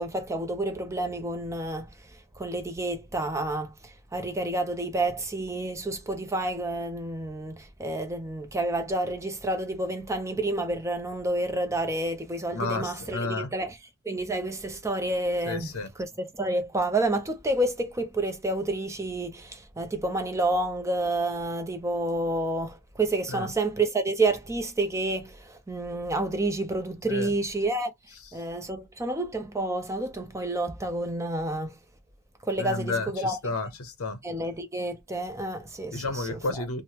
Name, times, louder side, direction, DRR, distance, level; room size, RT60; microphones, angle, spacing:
voice 1, 0.0-1.9 2.4-13.8 14.0-15.7 16.0-27.9 28.3-31.8 32.4-33.4 34.2-36.6, right 2 dB, 15° right, 0.4 m, -29 dB
voice 2, 12.5-13.5 15.4-15.9 23.3-23.5 27.1-27.3 32.6-34.2 35.9-36.8, left 3 dB, 65° left, 0.8 m, -31 dB
3.3 x 2.0 x 2.8 m
head